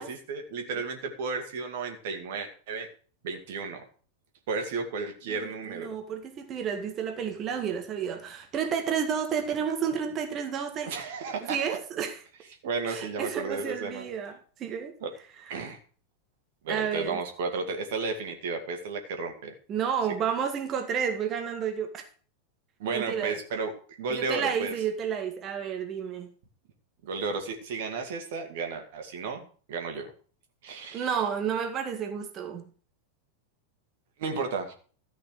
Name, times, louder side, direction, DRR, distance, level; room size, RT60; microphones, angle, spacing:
voice 1, 0.0-2.9 3.2-3.8 4.5-5.9 10.9-11.6 12.6-14.0 15.0-15.1 15.5-15.8 16.6-19.5 22.8-23.7 24.0-24.7 27.0-30.1 30.6-31.1 34.2-34.7, right 4 dB, 55° right, 2.2 m, -33 dB
voice 2, 5.3-10.9 11.4-12.3 12.9-14.9 16.7-17.2 19.7-22.0 22.9-23.4 24.1-26.3 30.9-32.7, right 7 dB, 30° right, 1.8 m, -31 dB
13.5 x 5.8 x 6.4 m
figure-of-eight pair, 90°, 0 cm